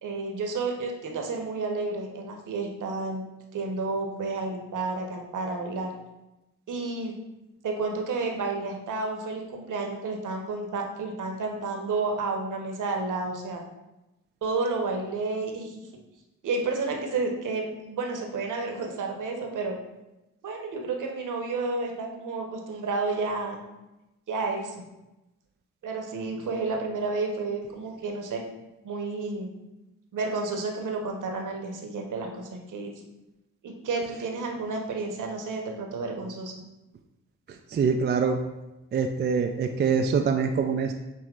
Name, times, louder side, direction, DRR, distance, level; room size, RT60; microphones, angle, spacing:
voice 1, 0.0-3.2 3.5-5.9 6.7-7.1 7.6-13.6 14.4-15.8 16.4-19.8 20.4-23.6 24.3-24.8 25.8-28.4 28.8-29.5 30.1-32.9 33.6-36.5, right 3 dB, 55° right, 2 dB, 0.9 m, -31 dB
voice 2, 37.5-38.4 38.9-40.9, right 5 dB, 30° right, 4 dB, 0.4 m, -25 dB
6.4 x 3.0 x 2.4 m, 0.98 s
hypercardioid pair, 40°, 37 cm